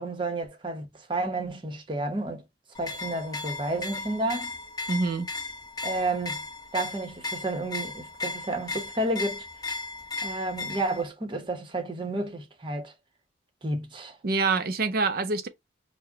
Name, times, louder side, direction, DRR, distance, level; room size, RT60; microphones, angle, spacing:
voice 1, 0.0-2.4 2.8-4.5 5.8-6.4 6.7-9.4 10.2-12.9 13.6-14.2, right 2 dB, 30° right, 0.8 m, -31 dB
sound 1, 2.7-11.1, left 3 dB, 20° left, 0.9 m, -36 dB
voice 2, 4.9-5.3 14.2-15.5, right 4 dB, 55° right, 0.5 m, -26 dB
4.8 x 2.1 x 2.7 m
head